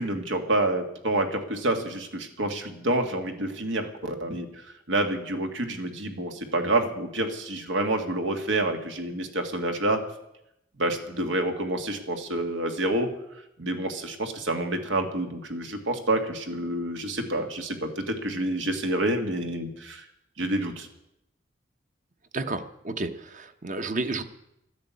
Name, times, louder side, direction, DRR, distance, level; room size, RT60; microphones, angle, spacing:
voice 1, 0.0-4.5 4.9-10.0 10.8-13.1 13.6-20.1 20.4-20.9, right 1 dB, 85° right, 5 dB, 2.0 m, -28 dB
voice 2, 22.3-24.2, right 2 dB, 40° right, 9 dB, 1.0 m, -31 dB
13.0 x 10.5 x 8.4 m, 0.83 s
head